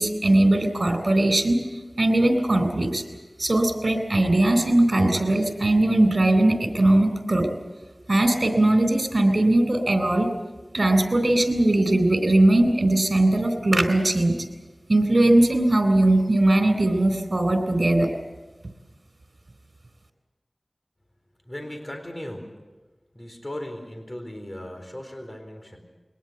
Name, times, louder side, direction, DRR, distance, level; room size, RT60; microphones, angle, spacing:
voice 1, 0.0-1.6 2.0-3.0 3.4-7.5 8.1-10.3 10.7-14.3 14.9-18.1, right 1 dB, 60° right, 7 dB, 3.8 m, -20 dB
voice 2, 21.4-22.5 23.1-25.8, left 1 dB, 30° left, 4 dB, 4.1 m, -37 dB
22.5 x 19.0 x 8.0 m, 1.2 s
wide cardioid pair, 50°, 0 cm